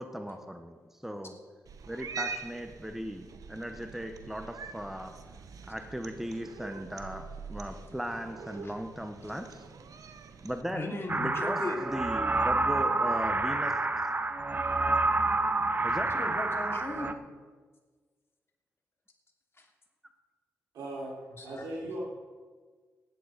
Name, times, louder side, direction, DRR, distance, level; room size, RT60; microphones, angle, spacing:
voice 1, 0.0-1.3 1.9-5.2 5.6-9.6 10.4-13.8 14.5-14.6 15.8-16.2, equal, 5° right, 6 dB, 1.2 m, -38 dB
Cat, 1.7-10.6, right 5 dB, 70° right, 0.9 m, -44 dB
voice 2, 10.6-11.9 16.0-17.2 19.6-19.7 21.3-21.6, left 2 dB, 40° left, 0 dB, 2.8 m, -37 dB
sound 1, 11.1-17.1, right 2 dB, 30° right, 0.9 m, -28 dB
voice 3, 20.7-22.0, right 1 dB, 90° right, -5 dB, 4.9 m, -39 dB
15.5 x 11.0 x 4.3 m, 1.5 s
cardioid pair, 55°, 6 cm